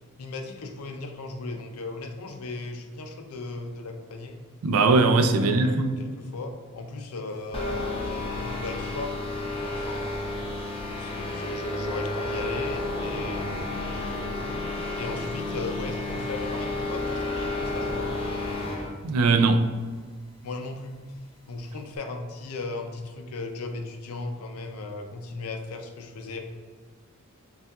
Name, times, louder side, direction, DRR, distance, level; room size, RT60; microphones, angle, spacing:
voice 1, 0.2-4.4 5.4-8.1 8.4-10.3 11.0-13.9 15.0-18.1 20.4-21.0 21.5-26.4, left 3 dB, 70° left, 0.5 m, -36 dB
voice 2, 4.6-6.0 19.0-19.6, right 3 dB, 70° right, 0.3 m, -20 dB
sound 1, 7.5-18.9, left 2 dB, 25° left, 0.6 m, -31 dB
sound 2, 11.2-16.0, right 1 dB, 40° right, 0.8 m, -42 dB
5.3 x 2.4 x 2.3 m
head